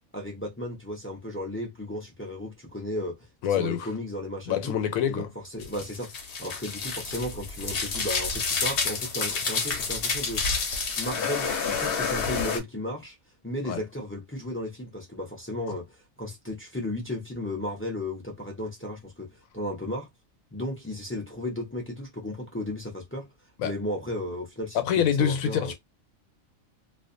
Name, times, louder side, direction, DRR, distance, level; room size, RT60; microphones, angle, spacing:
voice 1, 0.1-3.2 3.5-4.8 5.1-5.3 5.5-6.1 6.4-10.4 11.0-13.1 13.4-20.1 20.5-23.3 23.6-25.7, left 1 dB, 15° left, 0.4 m, -34 dB
voice 2, 3.4-3.9 4.5-5.3 13.7-13.8 23.6-23.7 24.7-25.7, left 9 dB, 85° left, 1.1 m, -25 dB
sound 1, 5.6-12.6, left 5 dB, 55° left, 0.7 m, -29 dB
2.4 x 2.2 x 2.5 m
omnidirectional pair, 1.4 m